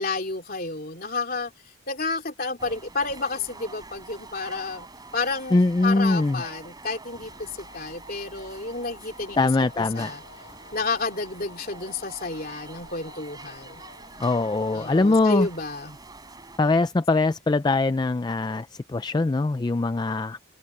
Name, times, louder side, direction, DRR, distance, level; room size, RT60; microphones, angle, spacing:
voice 1, 0.0-1.5 1.9-4.9 5.1-10.2 10.7-13.8 14.7-16.0, left 3 dB, 45° left, 3.1 m, -31 dB
sound 1, 2.6-16.6, right 3 dB, 20° right, 5.7 m, -46 dB
voice 2, 5.5-6.4 9.4-10.1 14.2-15.5 16.6-20.5, left 3 dB, 20° left, 0.3 m, -22 dB
sound 2, 7.1-15.7, left 4 dB, 65° left, 5.2 m, -52 dB
head